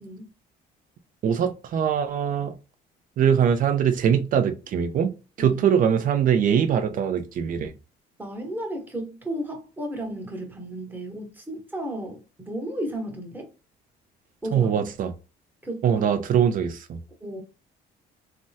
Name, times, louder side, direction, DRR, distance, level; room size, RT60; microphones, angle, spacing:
voice 1, 1.2-2.5 3.2-5.1 5.4-7.7 14.5-15.1 15.8-17.0, right 8 dB, 55° right, 0.5 m, -22 dB
voice 2, 8.2-13.5 14.4-14.7 15.6-16.1 17.2-17.4, right 1 dB, 10° right, 1.1 m, -34 dB
3.4 x 2.1 x 2.7 m
cardioid pair, 110°, 17 cm